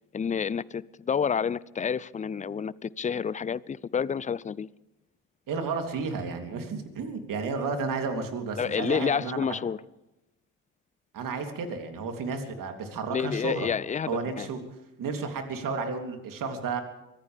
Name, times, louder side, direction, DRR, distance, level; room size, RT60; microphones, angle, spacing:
voice 1, 0.1-4.7 8.6-9.8 13.1-14.1 14.4-14.5, left 7 dB, 20° left, 0.6 m, -29 dB
voice 2, 5.5-9.4 11.1-13.7 14.1-14.6 15.0-16.8, right 4 dB, 50° right, 3.4 m, -32 dB
24.0 x 16.5 x 3.5 m
hypercardioid pair, 55°, 40 cm